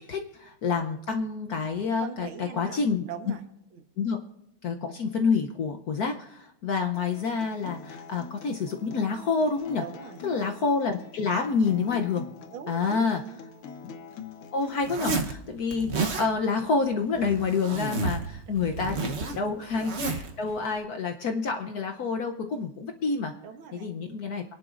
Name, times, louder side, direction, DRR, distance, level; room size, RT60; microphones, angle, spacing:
voice 1, 0.1-3.0 4.0-4.2 4.6-9.8 10.2-12.3 12.7-13.2 14.5-18.2 18.5-23.3 23.7-24.4, left 4 dB, 60° left, 4 dB, 1.0 m, -28 dB
voice 2, 2.0-3.4 3.7-3.8 9.8-10.2 12.5-13.4 18.0-18.5 19.2-19.4 23.4-24.2, right 8 dB, 75° right, 6 dB, 2.0 m, -42 dB
Acoustic guitar, 6.9-15.0, left 5 dB, 85° left, 1.8 m, -45 dB
Zipper (clothing), 14.8-15.3 15.7-16.3 17.1-18.3 18.5-20.3, right 3 dB, 45° right, 0.9 m, -31 dB
27.5 x 11.0 x 2.5 m, 0.82 s
omnidirectional pair, 2.3 m